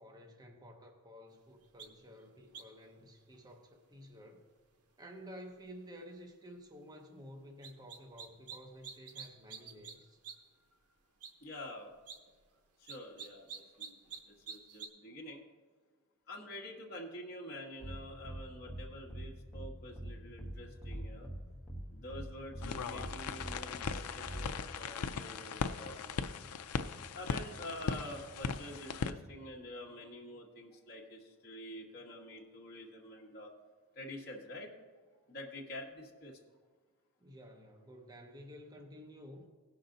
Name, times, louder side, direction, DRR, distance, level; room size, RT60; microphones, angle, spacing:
voice 1, 0.0-4.5 5.0-10.2 37.2-39.5, equal, 20° right, 1 dB, 0.7 m, -52 dB
sound 1, 1.8-1.9 2.5-2.8 7.6-8.6 8.8-9.9 10.2-10.3 10.7-10.8 11.2-11.3 11.9-12.2 12.9-14.2 14.5-14.9, right 6 dB, 85° right, 0.9 m, -46 dB
voice 2, 11.4-11.9 12.8-13.9 14.3-15.4 16.3-21.3 21.9-26.2 27.1-33.5 33.9-34.7 35.3-36.4, left 1 dB, 45° left, -2 dB, 1.4 m, -47 dB
sound 2, 17.8-17.9 18.2-18.4 18.7-18.8 19.1-19.2 19.5-19.7 20.0-20.1 20.4-20.5 20.8-21.4 21.7-21.8 22.1-22.2 22.5-22.7 23.0-23.1 23.4-23.5 23.8-23.9 24.2-24.5, right 1 dB, ahead, 1.3 m, -42 dB
sound 3, 22.6-29.1, left 6 dB, 85° left, 0.5 m, -39 dB
16.5 x 5.8 x 3.9 m, 1.4 s
head